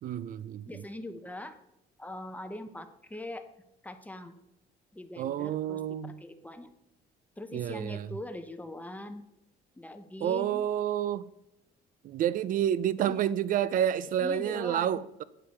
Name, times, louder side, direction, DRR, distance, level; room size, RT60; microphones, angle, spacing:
voice 1, 0.0-0.8 5.2-6.2 7.5-8.1 10.2-11.3 12.0-15.2, right 10 dB, 55° right, 0.4 m, -29 dB
voice 2, 0.7-1.6 2.0-3.4 3.8-4.3 4.9-5.8 6.2-6.7 7.4-9.2 9.8-10.6 13.0-13.3 14.2-15.0, left 1 dB, 10° left, 0.7 m, -41 dB
8.9 x 4.8 x 5.6 m
cardioid pair, 110°, 17 cm